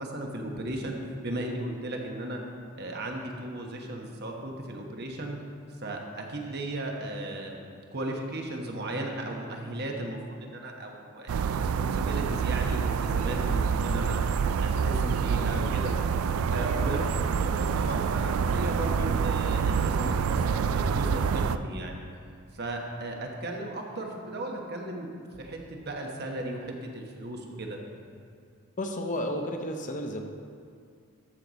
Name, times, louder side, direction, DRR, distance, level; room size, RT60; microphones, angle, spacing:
voice 1, 0.0-2.4 2.7-5.4 5.8-7.6 7.9-14.2 14.6-16.0 16.5-22.0 22.5-25.1 25.4-27.8, right 1 dB, 50° right, 1 dB, 1.2 m, -36 dB
sound 1, 11.3-21.6, right 6 dB, 90° right, 0.3 m, -27 dB
voice 2, 28.8-30.2, left 1 dB, 40° left, 4 dB, 0.7 m, -32 dB
13.5 x 6.5 x 4.1 m, 2.3 s
head